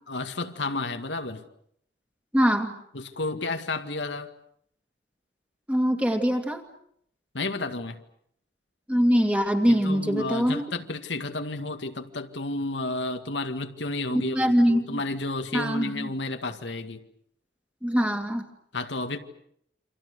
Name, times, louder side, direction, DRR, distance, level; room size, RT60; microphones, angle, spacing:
voice 1, 0.1-1.4 2.9-4.3 7.3-8.0 9.7-17.0 18.7-19.2, left 2 dB, 85° left, 2.0 m, -31 dB
voice 2, 2.3-2.7 5.7-6.6 8.9-10.6 14.1-15.0 15.5-16.1 17.8-18.5, equal, 5° right, 2.2 m, -23 dB
29.0 x 26.0 x 6.8 m
head